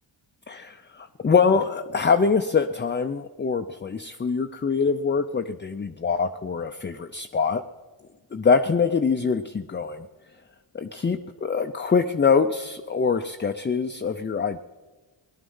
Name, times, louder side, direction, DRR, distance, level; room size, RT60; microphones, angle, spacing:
voice 1, 0.5-7.6 8.3-10.1 10.7-14.6, left 5 dB, 20° left, 6 dB, 0.6 m, -24 dB
18.5 x 11.5 x 5.6 m, 1.3 s
cardioid pair, 65°, 49 cm